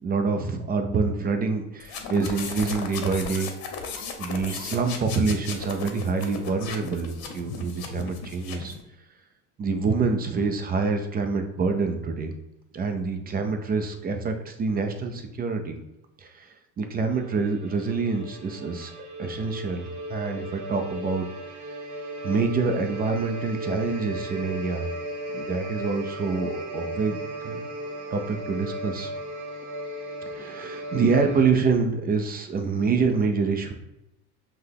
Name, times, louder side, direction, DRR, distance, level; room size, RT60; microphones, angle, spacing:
voice 1, 0.0-3.5 4.2-8.7 9.6-12.3 12.7-15.8 16.2-18.9 19.2-21.3 22.2-24.9 25.3-27.6 27.9-29.1 30.3-33.7, right 4 dB, 25° right, 6 dB, 0.4 m, -26 dB
sound 1, 1.8-8.8, left 5 dB, 55° left, 0.9 m, -36 dB
sound 2, 17.1-31.4, equal, 40° right, 0.8 m, -36 dB
5.5 x 2.2 x 3.3 m, 0.89 s
supercardioid pair, 105°, 43 cm